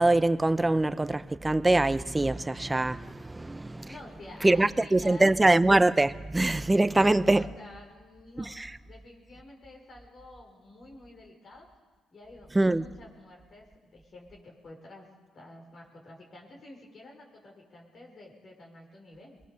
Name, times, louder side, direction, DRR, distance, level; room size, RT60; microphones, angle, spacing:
voice 1, 0.0-3.9 4.4-7.4 8.4-8.7 12.5-12.8, right 2 dB, 15° right, 0.8 m, -23 dB
voice 2, 3.9-5.4 6.9-11.7 12.1-15.1 15.3-19.4, left 2 dB, 45° left, 5.6 m, -49 dB
22.5 x 21.0 x 6.9 m
supercardioid pair, 75°, 0 cm